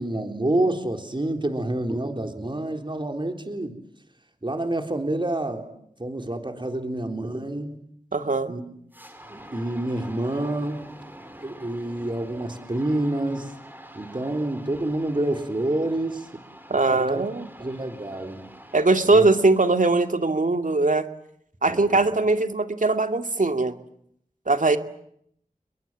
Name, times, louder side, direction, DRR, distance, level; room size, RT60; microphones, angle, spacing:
voice 1, 0.0-3.8 4.4-5.7 6.0-7.8 8.5-8.6 9.3-10.9 11.4-13.5 14.0-16.3 16.7-17.2 17.6-18.4 19.1-19.2 21.7-22.0, right 1 dB, 35° right, 5 dB, 3.8 m, -28 dB
voice 2, 8.1-8.5 16.7-17.4 18.7-21.1 21.6-23.7 24.5-24.8, right 3 dB, 65° right, 7 dB, 2.3 m, -21 dB
sound 1, 8.9-20.2, right 1 dB, 15° right, 5.5 m, -46 dB
29.5 x 22.5 x 7.5 m, 0.69 s
wide cardioid pair, 55°, 15 cm